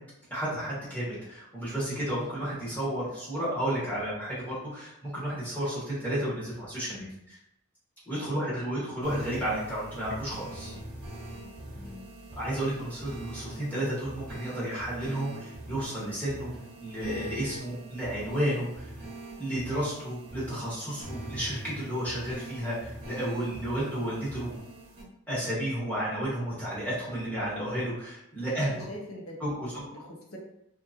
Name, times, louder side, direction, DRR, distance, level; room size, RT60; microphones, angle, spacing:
voice 1, 0.3-7.4 8.1-10.7 12.3-16.5 16.8-18.9 19.4-24.5 25.3-28.7 29.4-29.7, right 1 dB, 5° left, -10 dB, 1.1 m, -32 dB
sound 1, 9.0-25.0, right 1 dB, 70° right, 0.9 m, -43 dB
voice 2, 11.7-12.1 28.5-29.4 29.7-30.4, equal, 90° left, -1 dB, 0.7 m, -44 dB
2.9 x 2.3 x 2.5 m, 0.79 s
head